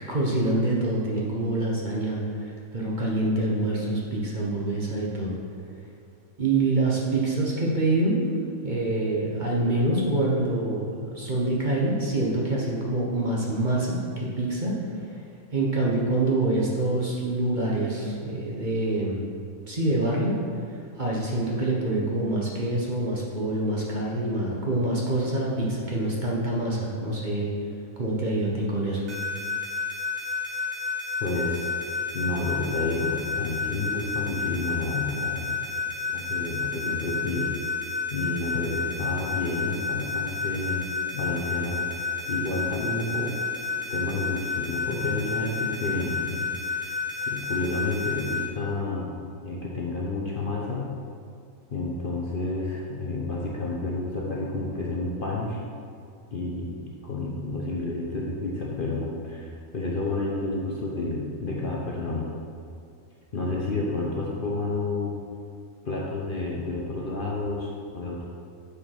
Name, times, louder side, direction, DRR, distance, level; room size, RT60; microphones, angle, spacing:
voice 1, 0.0-5.4 6.4-8.2 8.6-15.1 15.5-19.2 19.7-27.5 28.0-29.0, right 2 dB, 35° right, -4 dB, 1.1 m, -26 dB
sound 1, 29.1-48.3, left 3 dB, 70° right, 2.2 m, -33 dB
voice 2, 31.2-31.7 32.1-35.6 36.1-37.5 38.1-40.9 41.1-42.0 42.3-43.3 43.9-47.0 47.3-49.1 49.4-50.9 51.7-55.6 56.3-62.3 63.3-65.1 65.8-68.2, left 2 dB, 45° left, -4 dB, 0.9 m, -30 dB
6.9 x 5.0 x 5.8 m, 2.3 s
omnidirectional pair, 1.5 m